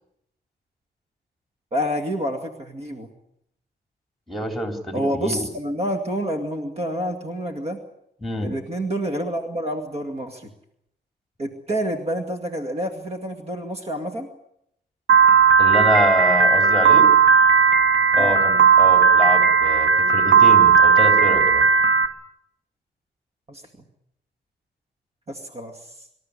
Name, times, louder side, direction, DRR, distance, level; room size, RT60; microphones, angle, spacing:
voice 1, 1.7-3.1 4.9-7.8 8.4-10.5 11.4-14.3 18.1-18.4 23.5-23.6 25.3-25.9, equal, 35° right, 4 dB, 2.3 m, -28 dB
voice 2, 4.3-5.5 8.2-8.5 15.6-17.1 18.1-21.7, equal, ahead, 4 dB, 3.7 m, -26 dB
Piano, 15.1-22.1, right 6 dB, 80° right, 2.2 m, -15 dB
26.0 x 13.0 x 9.8 m, 0.77 s
wide cardioid pair, 150°, 19 cm